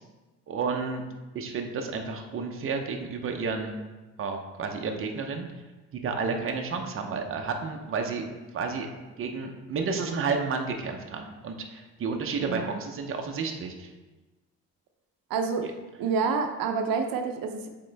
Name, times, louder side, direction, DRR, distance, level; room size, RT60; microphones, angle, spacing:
voice 1, 0.5-1.0 1.3-3.8 4.2-5.5 6.0-8.2 8.5-8.9 9.2-13.9, right 4 dB, 40° right, 3 dB, 0.7 m, -31 dB
voice 2, 12.4-12.8 15.3-15.7 16.0-17.7, right 5 dB, 85° right, 4 dB, 0.7 m, -28 dB
8.4 x 3.7 x 3.3 m, 1.2 s
cardioid pair, 135°, 33 cm